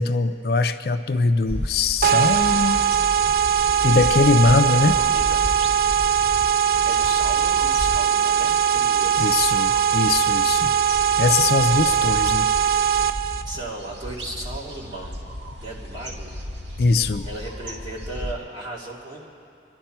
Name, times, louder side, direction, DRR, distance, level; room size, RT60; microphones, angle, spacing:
voice 1, 0.0-2.8 3.8-5.0 9.2-10.7 11.2-12.5 16.8-17.3, left 3 dB, 60° left, 9 dB, 0.5 m, -21 dB
sound 1, 1.5-18.3, equal, 80° right, 1.9 m, -35 dB
sound 2, 2.0-13.4, right 8 dB, 50° right, 0.4 m, -20 dB
voice 2, 4.4-5.5 6.8-9.4 11.7-12.1 13.4-15.2 15.6-16.3 17.2-19.3, right 2 dB, 25° right, -5 dB, 2.4 m, -36 dB
27.5 x 11.0 x 4.5 m, 2.7 s
head